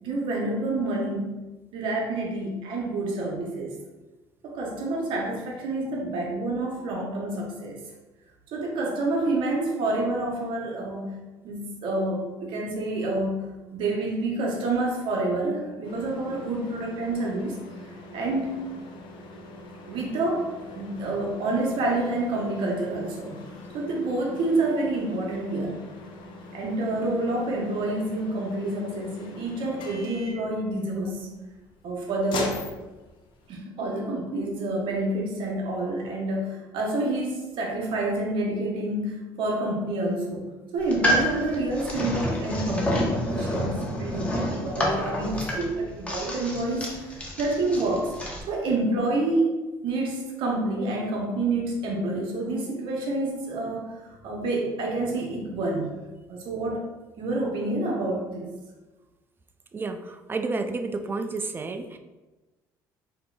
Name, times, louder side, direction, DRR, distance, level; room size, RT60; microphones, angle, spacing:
voice 1, 0.0-1.4 1.7-3.7 4.4-7.7 8.5-11.1 11.4-13.4 13.7-17.6 18.1-18.6 19.9-23.4 23.7-25.8 26.5-31.3 31.8-32.6 33.5-40.5 40.7-48.1 48.5-49.6 49.8-53.9 54.2-55.9 56.3-56.8 57.2-58.5, right 2 dB, 70° right, -1 dB, 0.9 m, -28 dB
sound 1, 15.8-33.6, left 2 dB, 65° left, 0.6 m, -42 dB
sound 2, 40.8-48.4, equal, 15° left, 0.9 m, -29 dB
voice 2, 59.7-62.0, right 3 dB, 25° right, 7 dB, 0.3 m, -31 dB
4.2 x 2.8 x 2.3 m, 1.1 s
supercardioid pair, 80°, 9 cm